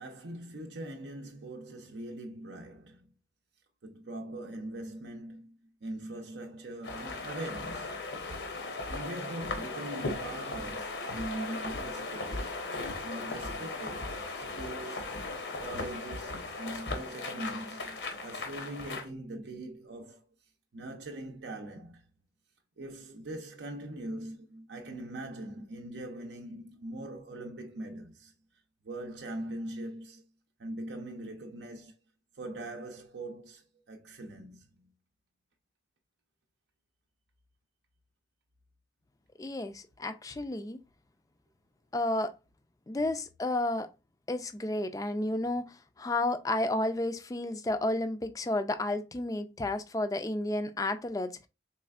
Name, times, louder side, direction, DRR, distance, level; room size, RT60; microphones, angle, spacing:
voice 1, 0.0-3.2 3.8-8.5 8.9-12.6 13.0-15.2 15.6-20.3 20.7-22.1 22.8-28.3 28.8-30.3 30.6-31.9 32.4-34.9, right 1 dB, 80° right, 0.6 m, -42 dB
sound 1, 6.8-19.1, left 3 dB, 85° left, 0.9 m, -37 dB
voice 2, 39.4-40.8 41.9-42.3 42.9-43.9 44.3-51.5, left 2 dB, 20° left, 0.3 m, -32 dB
4.2 x 3.2 x 2.3 m
head